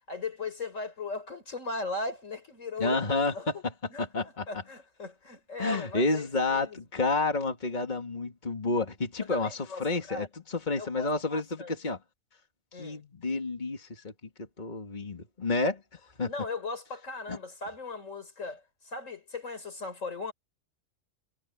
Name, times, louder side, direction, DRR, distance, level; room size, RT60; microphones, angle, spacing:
voice 1, 0.1-3.6 3.9-6.8 9.2-10.3 10.8-11.7 12.7-13.0 16.3-20.3, left 3 dB, 85° left, 4.4 m, -38 dB
voice 2, 2.8-3.3 4.0-4.5 5.6-12.0 12.8-14.1 14.4-16.3 17.3-17.4, left 3 dB, 35° left, 2.2 m, -30 dB
omnidirectional pair, 1.3 m